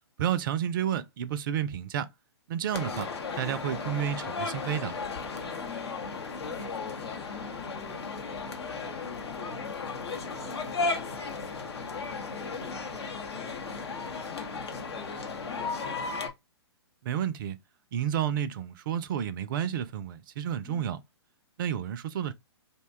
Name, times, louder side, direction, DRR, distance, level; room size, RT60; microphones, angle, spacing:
voice 1, 0.2-2.1 2.5-3.1 3.4-5.0 17.0-17.6 17.9-21.0 21.6-22.3, right 9 dB, 50° right, 0.4 m, -30 dB
sound 1, 2.7-16.3, left 4 dB, 70° left, 0.8 m, -35 dB
voice 2, 5.6-6.0 6.5-11.1 11.6-15.9 20.6-20.8, left 8 dB, 10° left, 0.5 m, -50 dB
2.7 x 2.2 x 3.3 m
figure-of-eight pair, 120°, 14 cm